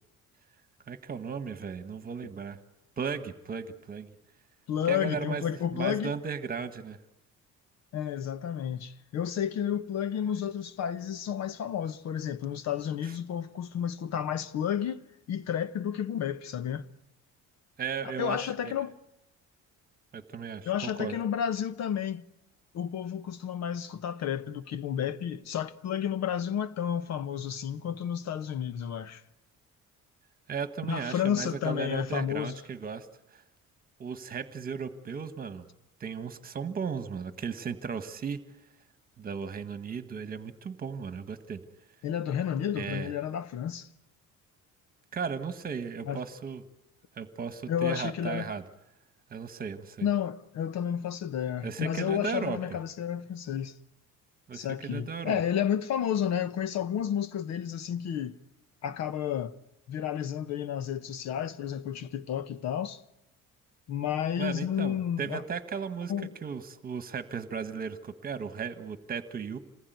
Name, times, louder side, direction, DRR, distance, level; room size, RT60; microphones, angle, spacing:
voice 1, 0.9-2.6 3.0-4.1 4.9-5.4 5.7-7.0 13.0-13.1 17.8-18.7 20.1-21.1 30.5-33.1 33.3-33.4 34.0-35.7 36.0-38.4 39.2-41.6 42.7-43.1 45.1-46.6 47.2-48.6 49.3-50.1 51.6-52.6 54.5-55.4 64.4-66.1 66.4-69.6, right 6 dB, 25° right, 1.5 m, -36 dB
voice 2, 4.7-6.1 7.9-15.0 15.3-16.8 18.2-18.9 20.6-22.2 22.7-29.2 30.9-32.6 42.0-43.9 46.0-46.2 47.7-48.5 50.0-53.7 54.5-58.3 58.8-59.5 59.9-63.0 63.9-65.4 66.1-66.3, left 9 dB, 55° left, 1.1 m, -31 dB
27.5 x 20.0 x 9.4 m
cardioid pair, 175°, 32 cm